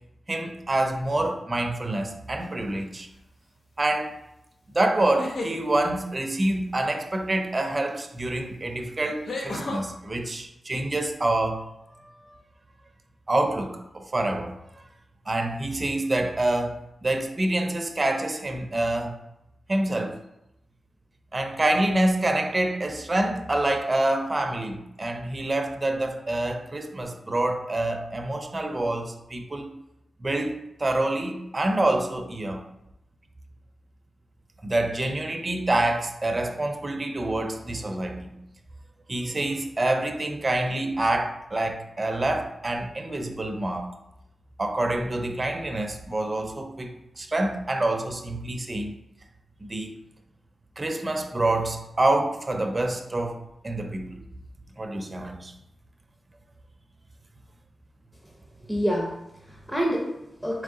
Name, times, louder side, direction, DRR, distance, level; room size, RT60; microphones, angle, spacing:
voice 1, 0.3-3.1 3.8-4.2 4.7-11.6 12.0-12.4 13.3-14.5 15.3-19.2 19.7-20.1 21.3-29.7 30.2-32.6 34.6-38.4 39.1-43.9 44.6-46.9 47.2-48.9 49.6-49.9 50.8-54.3 54.8-55.5, right 1 dB, 30° right, 4 dB, 0.5 m, -27 dB
sound 1, 2.4-2.8 5.0-5.6 7.9-8.0 9.3-9.8, left 2 dB, 75° left, 0.8 m, -32 dB
voice 2, 58.7-60.6, equal, ahead, -2 dB, 0.7 m, -28 dB
3.8 x 3.0 x 3.7 m, 0.86 s
cardioid pair, 60°, 0 cm